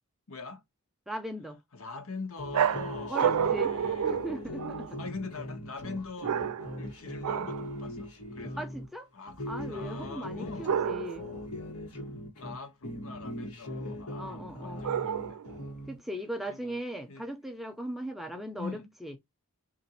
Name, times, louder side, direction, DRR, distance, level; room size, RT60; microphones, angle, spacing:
voice 1, 0.3-0.6 1.7-4.1 4.9-6.4 6.8-8.7 9.1-10.8 11.9-12.1 12.4-15.4 16.5-16.8 17.1-17.3 18.6-18.9, left 4 dB, 65° left, 0.9 m, -43 dB
voice 2, 1.1-1.6 3.1-3.7 4.0-5.0 8.6-9.1 9.5-11.3 14.2-14.9 15.9-19.1, equal, ahead, 0.5 m, -38 dB
sound 1, 2.4-8.9 9.3-12.6 12.8-16.0, left 1 dB, 85° left, 1.3 m, -40 dB
Barking Dogs II, 2.5-5.0 6.2-6.8 7.2-7.7 10.6-11.3 14.8-15.6, right 8 dB, 85° right, 0.4 m, -30 dB
3.7 x 2.6 x 4.1 m
head